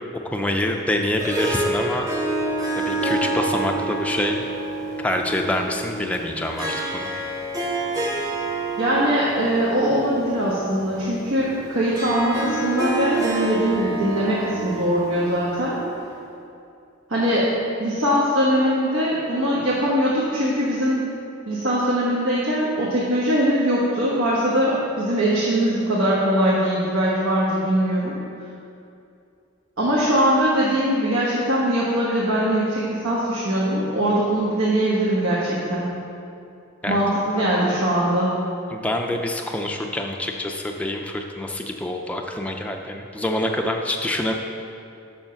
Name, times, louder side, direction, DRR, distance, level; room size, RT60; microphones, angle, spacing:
voice 1, 0.3-2.1 2.8-4.5 5.0-7.1 36.8-37.0 37.4-37.5 38.7-44.3, left 1 dB, 5° left, 2 dB, 0.4 m, -26 dB
Harp, 0.9-16.2, right 2 dB, 15° right, 0.8 m, -28 dB
voice 2, 8.8-15.7 17.1-17.5 17.8-21.1 21.5-28.1 29.8-35.9 36.9-38.3, equal, 90° right, -7 dB, 1.3 m, -21 dB
7.0 x 5.6 x 5.7 m, 2.6 s
head